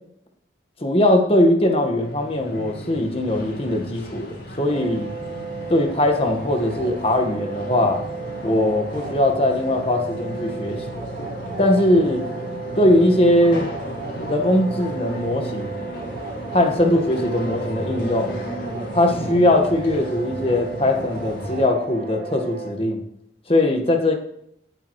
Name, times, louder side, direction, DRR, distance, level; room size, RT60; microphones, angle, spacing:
voice 1, 0.8-5.1 5.7-8.0 8.4-11.0 11.6-12.3 12.7-13.7 14.3-15.8 16.5-18.4 18.9-23.0 23.5-24.1, left 1 dB, 30° left, 4 dB, 1.6 m, -20 dB
sound 1, 1.8-21.7, equal, 75° left, 4.3 m, -34 dB
sound 2, 4.7-22.7, right 4 dB, 50° right, 2.0 m, -35 dB
18.0 x 8.7 x 3.2 m, 0.73 s
head